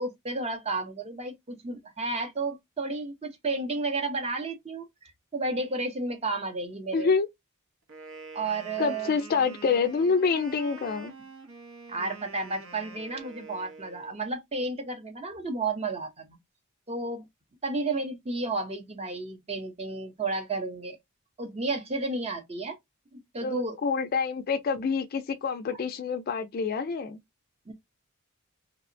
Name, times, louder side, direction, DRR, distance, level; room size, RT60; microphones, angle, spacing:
voice 1, 0.0-4.8 5.3-7.1 8.3-9.1 11.9-16.4 16.9-17.2 17.6-21.0 21.4-22.8 23.1-23.8 27.7-27.8, right 3 dB, 30° right, 0.6 m, -32 dB
voice 2, 6.9-7.3 8.8-11.1 23.4-27.2, left 5 dB, 45° left, 0.3 m, -27 dB
Wind instrument woodwind instrument, 7.9-14.2, right 3 dB, 70° right, 0.7 m, -46 dB
2.8 x 2.0 x 2.5 m
head